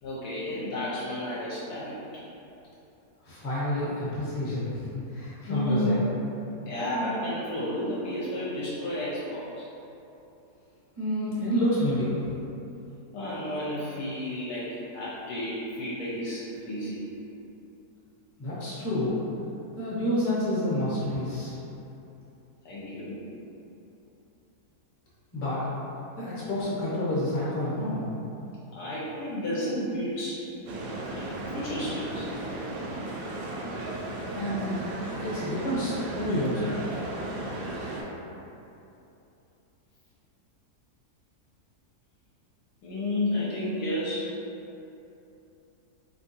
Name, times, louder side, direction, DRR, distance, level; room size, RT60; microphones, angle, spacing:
voice 1, 0.0-1.9 5.5-6.1 6.6-9.7 13.1-17.1 22.6-23.2 28.7-30.5 31.1-31.3 31.5-32.3 42.8-44.3, left 1 dB, 75° left, -8 dB, 1.1 m, -31 dB
voice 2, 3.2-6.0 11.0-12.2 18.4-19.2 19.7-21.6 25.3-25.6 26.2-28.1 34.3-34.8 35.2-36.8, left 1 dB, 30° left, -9 dB, 0.8 m, -29 dB
sound 1, 30.7-38.0, right 2 dB, 85° right, 1.2 m, -35 dB
3.4 x 2.9 x 2.8 m, 2.9 s
omnidirectional pair, 1.7 m